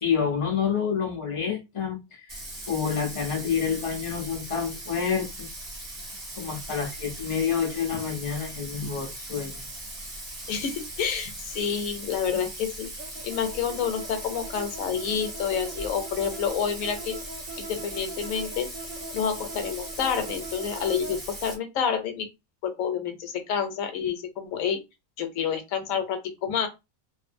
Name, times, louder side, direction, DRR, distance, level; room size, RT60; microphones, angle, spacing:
voice 1, 0.0-5.5 6.4-9.7, left 7 dB, 50° left, 0.4 m, -28 dB
Bathtub (filling or washing), 2.3-21.5, right 1 dB, 30° right, 0.9 m, -39 dB
voice 2, 10.5-12.9 13.2-17.2 17.6-18.7 19.1-22.3 22.6-24.8 25.2-26.7, left 7 dB, 75° left, 1.0 m, -29 dB
sound 1, 13.0-21.2, right 2 dB, 75° right, 1.0 m, -41 dB
2.6 x 2.4 x 2.5 m
omnidirectional pair, 1.5 m